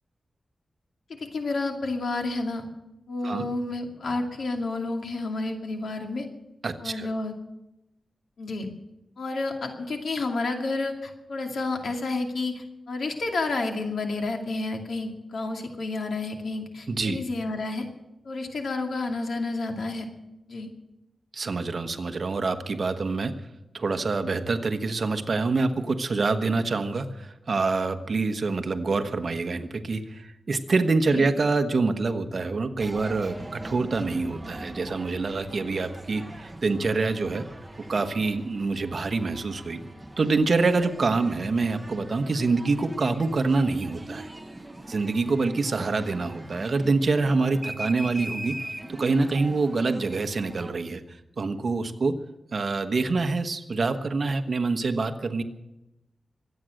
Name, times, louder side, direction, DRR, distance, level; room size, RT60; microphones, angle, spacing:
voice 1, 1.2-2.6 3.1-6.3 6.8-7.3 8.4-8.7 9.2-17.9 18.2-20.1 20.5-20.7 31.1-31.3, left 3 dB, 80° left, 2 dB, 2.5 m, -30 dB
voice 2, 6.6-7.1 16.9-17.2 21.3-23.3 23.7-37.4 37.9-39.8 40.2-44.3 44.9-48.5 49.0-51.0 51.4-52.1 52.5-55.4, right 3 dB, 50° right, 7 dB, 1.2 m, -26 dB
sound 1, 32.8-50.7, right 1 dB, 15° right, 1.2 m, -41 dB
24.0 x 9.1 x 6.5 m, 0.94 s
wide cardioid pair, 135°, 0 cm